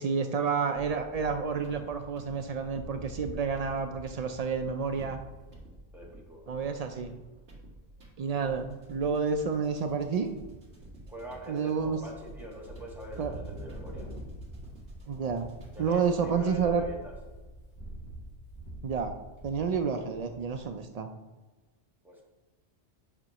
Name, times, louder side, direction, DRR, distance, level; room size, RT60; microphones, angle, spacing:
voice 1, 0.0-5.2 6.5-7.1 8.2-10.3 11.5-12.0 13.2-13.3 15.1-15.5 15.8-16.8 18.8-19.1 19.4-21.1, right 5 dB, 80° right, 6 dB, 0.3 m, -30 dB
sound 1, 0.7-16.0, right 1 dB, 60° right, 2.0 m, -50 dB
Wind, 2.7-5.6 6.1-6.2 6.4-6.8 8.2-8.8 9.4-9.9 10.2-11.3 11.8-12.3 12.6-20.8, right 1 dB, 15° left, 2.5 m, -45 dB
voice 2, 5.9-6.5 11.1-14.1 15.7-17.1 22.0-22.2, equal, ahead, -3 dB, 1.5 m, -43 dB
8.9 x 5.7 x 3.0 m, 1.2 s
omnidirectional pair, 1.2 m